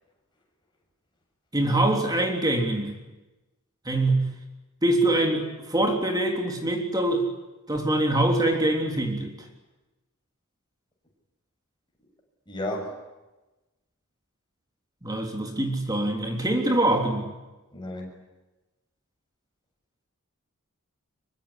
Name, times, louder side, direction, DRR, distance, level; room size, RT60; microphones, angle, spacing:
voice 1, 1.5-2.9 3.8-4.3 4.8-7.3 7.7-9.5 15.0-17.3, right 1 dB, 15° right, 2 dB, 3.4 m, -24 dB
voice 2, 12.5-13.0 17.7-18.1, left 1 dB, 20° left, 0 dB, 7.4 m, -32 dB
25.0 x 23.5 x 9.9 m, 1.1 s
head